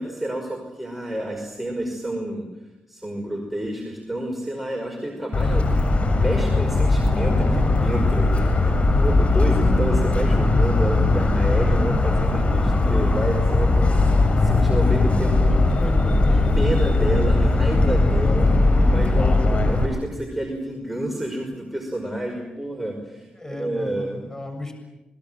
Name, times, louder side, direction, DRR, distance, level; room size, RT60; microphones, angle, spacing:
voice 1, 0.0-2.5 2.9-14.1 14.4-15.8 16.5-24.3, right 1 dB, 5° right, 2 dB, 5.4 m, -29 dB
Motor vehicle (road) / Siren, 5.3-19.9, left 2 dB, 40° left, 7.3 m, -19 dB
voice 2, 15.8-16.5 23.4-24.7, left 1 dB, 15° left, 6 dB, 7.3 m, -35 dB
28.5 x 21.0 x 7.8 m, 0.99 s
supercardioid pair, 50°, 3 cm